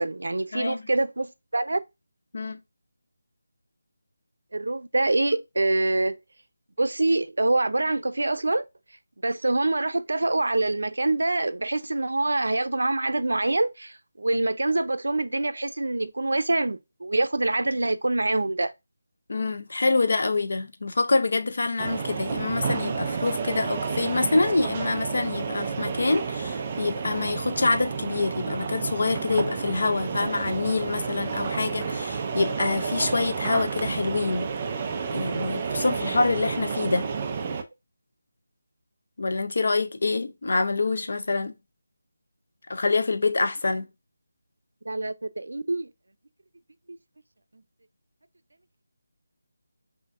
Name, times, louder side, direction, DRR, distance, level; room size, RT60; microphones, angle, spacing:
voice 1, 0.0-1.8 4.5-6.2 6.8-8.6 9.2-18.7 44.9-45.9, right 2 dB, 90° right, 0.5 m, -25 dB
voice 2, 0.5-0.8 2.3-2.6 19.3-34.5 35.1-37.1 39.2-41.6 42.7-43.9, left 3 dB, 45° left, 0.6 m, -26 dB
sound 1, 21.8-37.6, right 5 dB, 15° right, 0.4 m, -30 dB
5.6 x 2.6 x 2.4 m
figure-of-eight pair, 180°, 0 cm